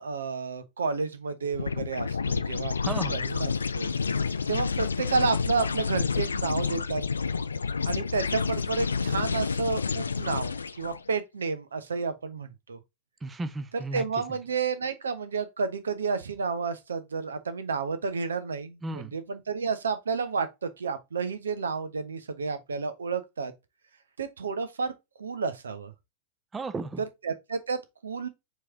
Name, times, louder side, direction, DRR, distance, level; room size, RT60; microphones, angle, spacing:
voice 1, 0.0-3.9 4.5-7.0 7.9-12.8 13.7-23.5 24.2-24.9 25.2-25.9 27.2-28.3, right 4 dB, 70° right, 0.7 m, -31 dB
sound 1, 1.5-11.0, left 5 dB, 75° left, 0.3 m, -29 dB
voice 2, 2.8-3.2 13.2-14.0 18.8-19.1 26.5-27.0, right 3 dB, 15° right, 0.6 m, -34 dB
4.6 x 3.0 x 3.5 m
figure-of-eight pair, 90°, 0 cm